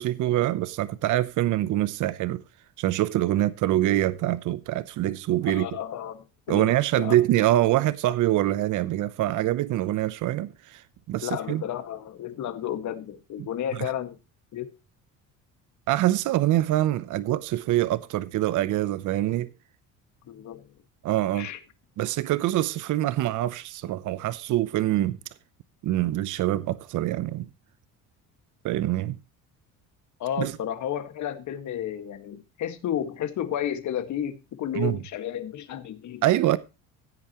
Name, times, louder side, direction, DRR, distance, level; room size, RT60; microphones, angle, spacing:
voice 1, 0.0-2.4 2.8-5.7 6.5-10.8 11.1-11.6 13.8-13.9 15.9-19.5 21.0-21.5 22.0-25.2 25.8-27.5 28.6-29.2 30.4-30.5 34.7-35.0 36.2-36.6, right 14 dB, 60° right, 0.8 m, -25 dB
voice 2, 5.4-7.2 11.2-14.2 14.5-14.7 20.3-20.7 21.3-21.6 30.2-36.4, left 10 dB, 55° left, 1.8 m, -32 dB
16.0 x 8.6 x 3.0 m
cardioid pair, 130°, 34 cm